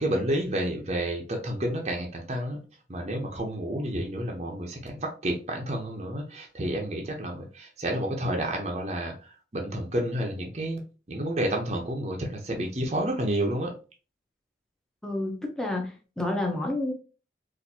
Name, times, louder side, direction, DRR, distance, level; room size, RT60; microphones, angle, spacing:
voice 1, 0.0-2.6 2.9-10.8 11.1-13.7, right 1 dB, 35° right, 1 dB, 0.7 m, -30 dB
voice 2, 15.0-16.9, left 2 dB, 5° left, 1 dB, 0.7 m, -29 dB
4.2 x 2.5 x 2.7 m, 0.34 s
head